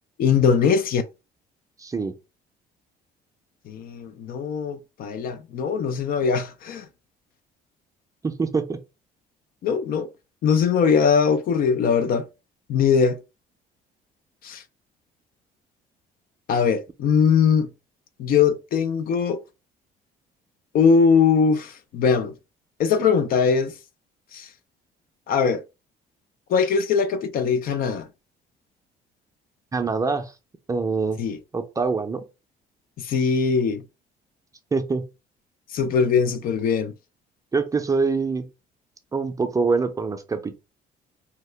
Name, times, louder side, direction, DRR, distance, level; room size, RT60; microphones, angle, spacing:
voice 1, 0.2-1.0 3.7-6.8 9.6-10.1 10.4-12.3 12.7-13.2 14.4-14.6 16.5-17.7 18.2-19.4 20.7-22.3 22.8-23.7 24.3-24.5 25.3-25.6 26.5-28.1 31.2-31.4 33.0-33.8 35.7-36.9, left 6 dB, 60° left, 0.4 m, -21 dB
voice 2, 1.8-2.2 8.2-8.8 29.7-30.3 30.7-31.2 31.5-32.2 34.7-35.1 37.5-38.5 39.1-40.6, right 4 dB, 20° right, 0.5 m, -24 dB
2.8 x 2.1 x 3.2 m
cardioid pair, 110°, 17 cm